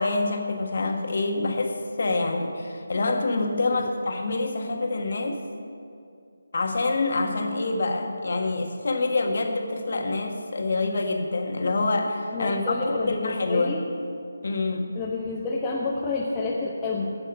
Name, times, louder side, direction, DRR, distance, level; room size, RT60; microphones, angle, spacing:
voice 1, 0.0-5.4 6.5-13.8 14.4-14.9, left 3 dB, 55° left, 3 dB, 1.4 m, -26 dB
voice 2, 3.5-3.9 12.3-13.8 14.9-17.2, left 3 dB, 15° left, -5 dB, 0.9 m, -29 dB
16.0 x 6.2 x 5.6 m, 2.4 s
figure-of-eight pair, 155°, 0 cm